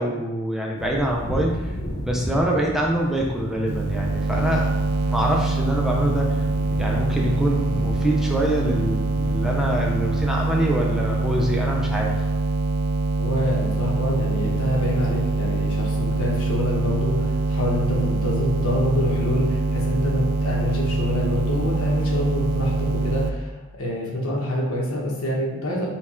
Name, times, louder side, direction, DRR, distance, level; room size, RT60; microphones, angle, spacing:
voice 1, 0.0-1.6 2.0-4.7 5.1-6.4 6.8-12.1, right 1 dB, ahead, -2 dB, 0.4 m, -25 dB
sound 1, 0.8-10.2, left 1 dB, 45° left, 0.6 m, -35 dB
sound 2, 3.7-23.3, right 3 dB, 85° right, 0.3 m, -24 dB
voice 2, 13.2-25.9, left 1 dB, 80° left, -3 dB, 1.1 m, -26 dB
4.3 x 2.3 x 4.2 m, 1.1 s
head